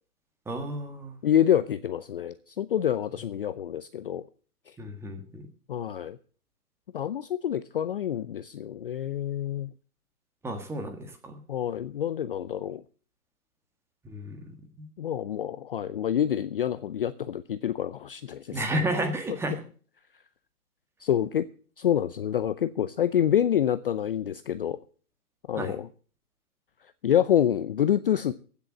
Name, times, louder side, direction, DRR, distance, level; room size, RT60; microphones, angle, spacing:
voice 1, 0.5-1.2 4.8-5.4 10.4-11.4 14.0-14.4 14.8-14.9 18.5-19.6 25.6-25.8, right 1 dB, 5° right, 5 dB, 1.5 m, -32 dB
voice 2, 1.2-4.2 5.7-6.2 6.9-9.7 11.5-12.8 15.0-18.6 19.3-19.4 21.0-21.5 21.8-24.8 25.5-25.9 27.0-28.3, left 10 dB, 40° left, 14 dB, 0.5 m, -27 dB
15.5 x 7.0 x 7.6 m, 0.41 s
hypercardioid pair, 140°, 45 cm